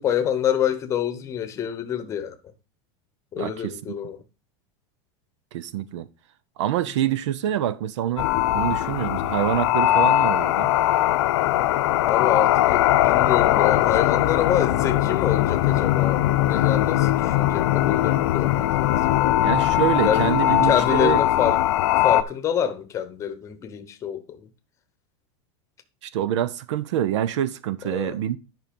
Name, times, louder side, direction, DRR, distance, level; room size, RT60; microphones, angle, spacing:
voice 1, 0.0-2.3 3.3-4.2 12.0-19.4 20.0-21.6 22.0-24.4 27.8-28.2, left 9 dB, 20° left, 0.9 m, -27 dB
voice 2, 3.4-4.0 5.5-6.1 6.6-10.7 19.4-21.2 26.0-28.4, right 11 dB, 75° right, 0.7 m, -26 dB
sound 1, 8.2-22.2, left 14 dB, 65° left, 0.7 m, -20 dB
10.0 x 5.4 x 5.2 m
supercardioid pair, 170°, 15 cm